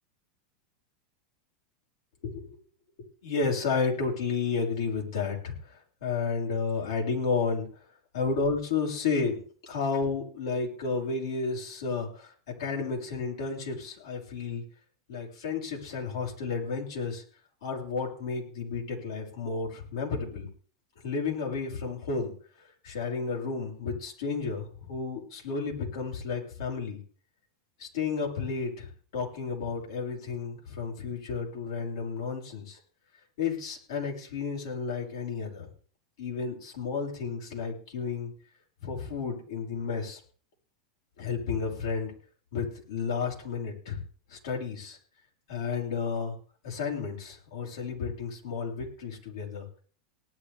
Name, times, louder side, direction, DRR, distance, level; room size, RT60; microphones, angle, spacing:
voice 1, 3.2-7.7 8.1-14.6 15.1-17.2 17.6-20.5 21.0-22.3 22.8-27.0 27.8-28.9 29.1-32.8 33.4-35.7 36.2-38.3 38.8-40.2 41.2-42.1 42.5-44.0 44.3-45.0 45.5-46.3 46.6-49.7, left 5 dB, 70° left, -2 dB, 5.9 m, -32 dB
19.0 x 10.5 x 3.6 m, 0.43 s
hypercardioid pair, 95°, 3 cm